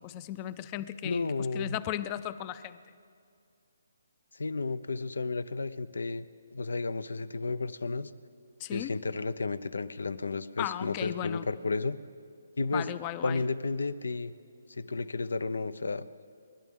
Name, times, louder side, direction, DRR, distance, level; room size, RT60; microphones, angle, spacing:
voice 1, 0.0-2.8 8.6-8.9 10.6-11.5 12.7-13.4, left 12 dB, 25° left, 15 dB, 0.5 m, -36 dB
voice 2, 1.0-1.8 4.3-6.3 6.5-8.1 8.7-12.0 12.6-12.9 13.2-14.3 14.7-16.0, left 3 dB, 85° left, 16 dB, 0.6 m, -32 dB
29.5 x 11.5 x 3.7 m, 2.4 s
hypercardioid pair, 155°, 0 cm